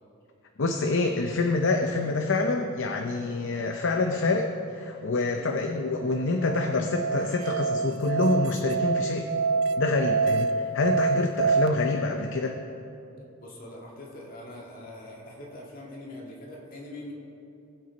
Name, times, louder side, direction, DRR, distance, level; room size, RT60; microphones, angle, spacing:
voice 1, 0.6-4.5 4.8-9.3 9.8-12.6, left 3 dB, 60° left, 4 dB, 0.6 m, -26 dB
Musical instrument, 6.0-11.7, right 5 dB, 75° right, 0.4 m, -26 dB
voice 2, 13.4-17.1, left 1 dB, 45° left, -3 dB, 2.0 m, -43 dB
19.5 x 7.9 x 4.1 m, 2.8 s
head